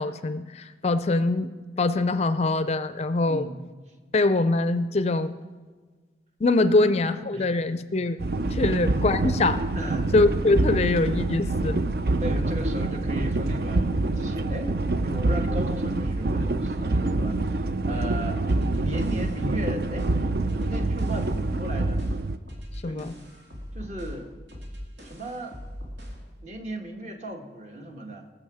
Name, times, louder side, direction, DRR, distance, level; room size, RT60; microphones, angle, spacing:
voice 1, 0.0-1.5 1.8-3.5 4.1-5.3 6.4-8.2 8.5-9.7 10.1-11.8 22.8-23.2, left 2 dB, 35° left, 12 dB, 0.4 m, -23 dB
voice 2, 3.3-3.9 6.7-6.9 7.3-7.6 8.6-8.8 9.7-10.1 12.2-18.4 18.8-20.1 20.6-22.0 22.8-23.1 23.7-24.3 25.0-25.6 26.4-28.3, equal, 40° right, 3 dB, 1.3 m, -36 dB
sound 1, 8.2-22.4, right 2 dB, 55° right, 0.5 m, -26 dB
sound 2, 18.5-26.3, equal, 80° right, 2.5 m, -40 dB
20.0 x 6.9 x 4.9 m, 1.4 s
head